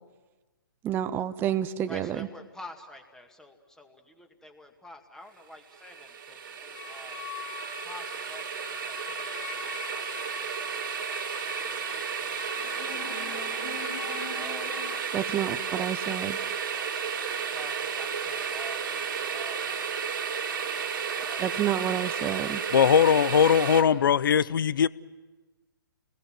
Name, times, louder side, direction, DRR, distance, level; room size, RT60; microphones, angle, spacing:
voice 1, 0.8-2.3 15.1-16.4 21.4-22.6, right 10 dB, 15° right, 0.7 m, -29 dB
voice 2, 1.8-7.2 7.8-11.1 11.5-14.7 15.1-16.9 17.5-20.0 20.6-22.3, left 1 dB, 5° left, 2.1 m, -49 dB
sound 1, 5.7-23.8, right 7 dB, 60° right, 2.5 m, -33 dB
sound 2, 6.7-15.0, left 10 dB, 45° left, 3.7 m, -42 dB
voice 3, 22.7-24.9, left 8 dB, 60° left, 0.7 m, -20 dB
29.0 x 20.5 x 7.7 m
hypercardioid pair, 135°, 12 cm